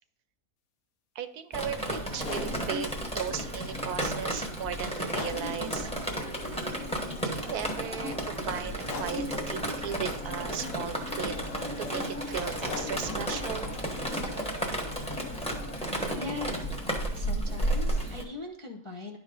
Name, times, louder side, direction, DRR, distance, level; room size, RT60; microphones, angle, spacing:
voice 1, 1.1-5.9 7.2-11.4 11.8-13.7, right 9 dB, 75° right, 11 dB, 1.1 m, -37 dB
Drip, 1.5-18.2, right 1 dB, 5° left, 1.0 m, -33 dB
sound 1, 2.1-17.4, left 5 dB, 80° left, 1.4 m, -46 dB
sound 2, 6.3-15.8, left 3 dB, 50° left, 1.2 m, -45 dB
voice 2, 16.1-16.8 17.1-19.2, left 3 dB, 30° left, 0 dB, 0.5 m, -39 dB
11.0 x 4.8 x 3.8 m, 0.79 s
omnidirectional pair, 1.7 m